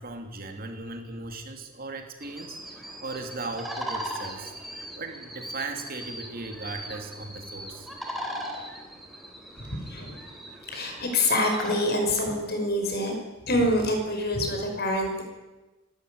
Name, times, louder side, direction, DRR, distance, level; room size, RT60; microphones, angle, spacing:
voice 1, 0.0-7.9, right 3 dB, 45° right, 4 dB, 3.1 m, -38 dB
sound 1, 2.2-11.8, equal, ahead, 3.6 m, -39 dB
voice 2, 9.6-10.2 10.7-13.1 13.5-15.2, left 1 dB, 50° left, 3 dB, 5.7 m, -26 dB
26.5 x 13.0 x 9.7 m, 1.1 s
head